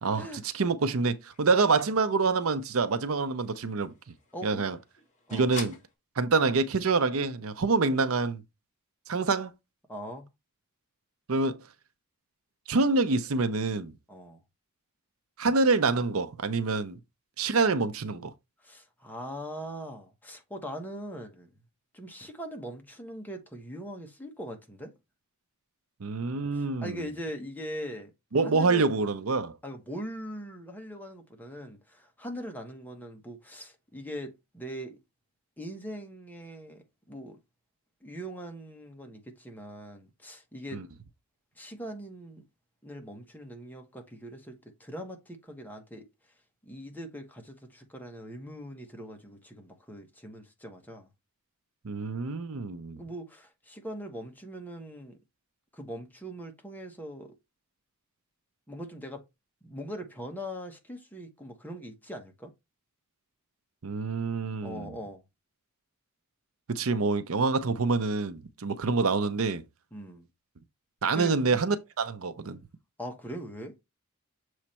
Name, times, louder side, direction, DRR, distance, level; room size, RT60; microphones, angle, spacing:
voice 1, 0.0-3.9 4.4-4.8 5.3-5.7 6.2-8.4 9.1-9.5 11.3-11.6 12.7-13.9 15.4-17.0 17.4-18.3 26.0-27.0 28.3-29.6 40.7-40.8 51.8-53.0 63.8-64.9 66.7-69.6 71.0-72.6, right 4 dB, 75° right, 0.7 m, -26 dB
sound 1, 0.8-5.9, left 4 dB, 35° left, 1.9 m, -48 dB
voice 2, 4.3-4.6 5.3-5.5 9.9-10.3 14.1-14.4 18.6-21.5 21.9-24.9 26.5-28.1 28.4-28.9 29.6-35.0 35.6-37.4 38.0-40.8 41.6-42.4 42.8-46.1 46.6-51.1 53.0-55.2 55.7-57.3 58.7-59.2 59.6-62.5 64.6-65.2 69.9-70.3 71.1-71.3 73.0-73.7, equal, 10° left, 1.2 m, -41 dB
7.1 x 3.2 x 4.3 m
head